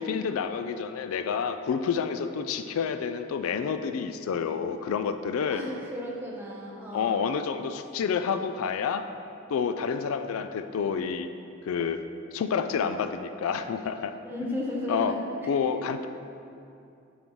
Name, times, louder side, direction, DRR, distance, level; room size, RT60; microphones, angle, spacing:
voice 1, 0.0-5.6 6.9-9.1 9.5-11.3 11.6-12.0 12.3-14.1 14.4-14.6 14.9-15.2 15.5-16.1, left 6 dB, 85° left, 9 dB, 0.3 m, -29 dB
voice 2, 5.5-7.2 14.2-15.2 15.7-15.8, equal, 10° right, -4 dB, 0.9 m, -35 dB
8.4 x 5.6 x 3.1 m, 2.6 s
head